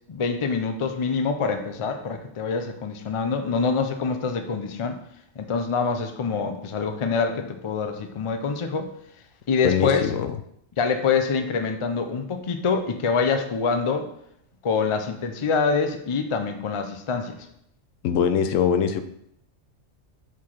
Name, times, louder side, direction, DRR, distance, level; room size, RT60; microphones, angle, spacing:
voice 1, 0.1-5.0 5.4-8.9 9.5-10.1 10.8-14.1 14.6-17.5, left 5 dB, 40° left, 7 dB, 0.4 m, -25 dB
voice 2, 9.6-10.3 18.0-19.0, left 7 dB, 90° left, 10 dB, 1.0 m, -22 dB
4.7 x 4.5 x 5.6 m, 0.73 s
omnidirectional pair, 1.3 m